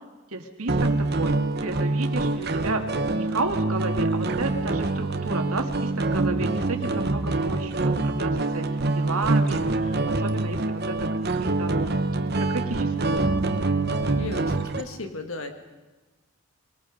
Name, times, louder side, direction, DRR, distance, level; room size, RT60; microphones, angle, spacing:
voice 1, 0.3-11.9 12.2-13.5, right 3 dB, 80° right, 4 dB, 2.0 m, -32 dB
sound 1, 0.7-14.8, right 2 dB, 45° right, 1.0 m, -25 dB
voice 2, 14.2-15.5, left 3 dB, 65° left, 5 dB, 1.9 m, -35 dB
23.5 x 22.0 x 5.2 m, 1.2 s
head